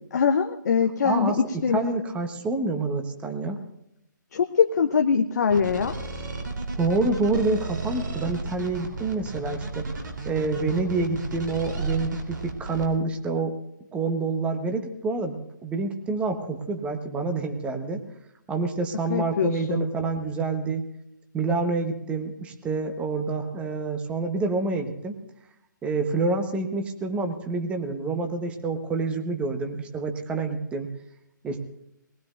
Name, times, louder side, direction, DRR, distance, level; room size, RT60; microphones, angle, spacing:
voice 1, 0.1-1.3 1.6-1.8 4.3-5.9 19.1-19.9, left 6 dB, 55° left, 5 dB, 0.9 m, -23 dB
voice 2, 1.0-1.4 1.7-3.6 6.8-9.9 10.2-13.6 13.9-18.0 18.5-20.9 21.3-25.1 25.8-30.9 31.4-31.6, right 3 dB, 10° right, 6 dB, 1.3 m, -27 dB
sound 1, 5.5-12.9, right 3 dB, 70° right, 3.8 m, -33 dB
21.0 x 19.5 x 2.6 m, 0.83 s
figure-of-eight pair, 140°, 11 cm